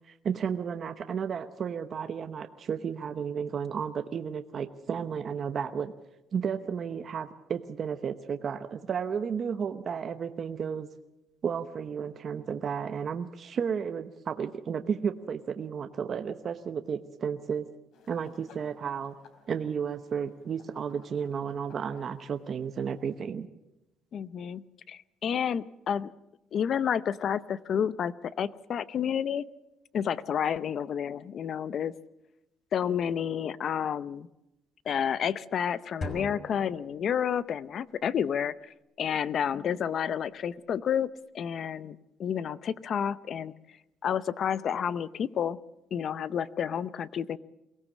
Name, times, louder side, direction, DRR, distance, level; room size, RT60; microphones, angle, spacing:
voice 1, 0.1-5.9 6.3-10.9 11.4-17.7 18.1-19.1 19.5-23.5, right 7 dB, 40° right, 8 dB, 0.9 m, -33 dB
sound 1, 17.9-23.2, left 5 dB, 60° left, 3.5 m, -59 dB
voice 2, 24.1-24.6 24.9-26.1 26.5-29.5 29.9-31.9 32.7-34.3 34.9-43.5 44.0-45.6 45.9-47.4, left 8 dB, 45° left, 17 dB, 0.6 m, -30 dB
sound 2, 36.0-37.7, left 2 dB, 25° left, 2.7 m, -40 dB
23.0 x 17.0 x 7.3 m, 0.94 s
cardioid pair, 145°, 0 cm